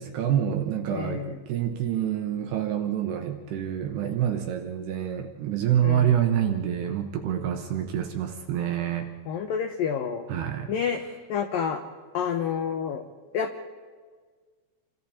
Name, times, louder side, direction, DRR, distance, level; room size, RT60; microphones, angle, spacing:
voice 1, 0.0-9.1 10.3-10.7, right 10 dB, 70° right, 5 dB, 2.8 m, -27 dB
voice 2, 0.9-1.4 5.8-6.2 9.3-10.3 10.7-11.0 11.3-11.8 12.1-13.0 13.3-13.6, left 7 dB, 90° left, 6 dB, 1.9 m, -29 dB
29.0 x 25.5 x 4.3 m, 1.5 s
omnidirectional pair, 5.6 m